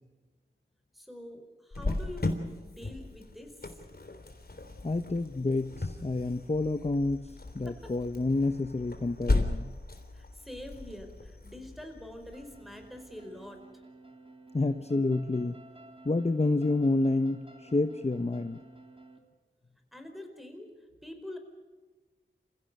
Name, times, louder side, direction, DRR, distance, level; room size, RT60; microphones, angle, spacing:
voice 1, 0.9-2.4 2.6-3.7 7.7-7.9 10.1-13.8 19.9-21.4, left 1 dB, ahead, 5 dB, 4.8 m, -45 dB
Cricket, 1.7-13.2, left 2 dB, 50° left, 3.5 m, -36 dB
voice 2, 4.8-9.8 14.5-15.6 16.0-18.6, left 2 dB, 30° left, 9 dB, 1.0 m, -29 dB
sound 1, 12.3-19.2, right 2 dB, 25° right, 3.4 m, -52 dB
28.0 x 16.5 x 6.7 m, 1.4 s
wide cardioid pair, 55°, 21 cm